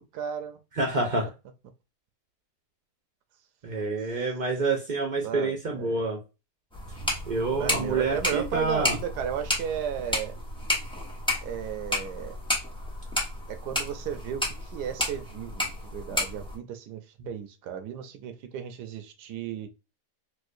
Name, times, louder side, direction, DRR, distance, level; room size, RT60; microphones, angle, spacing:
voice 1, 0.1-0.6 5.2-6.0 7.6-10.4 11.4-12.4 13.5-19.7, right 8 dB, 85° right, 1.2 m, -34 dB
voice 2, 0.7-1.3 3.6-6.2 7.3-9.0 17.2-17.3, right 3 dB, 70° right, 0.4 m, -28 dB
sound 1, 6.7-16.6, left 1 dB, 5° left, 0.5 m, -32 dB
4.4 x 2.2 x 2.5 m
omnidirectional pair, 1.7 m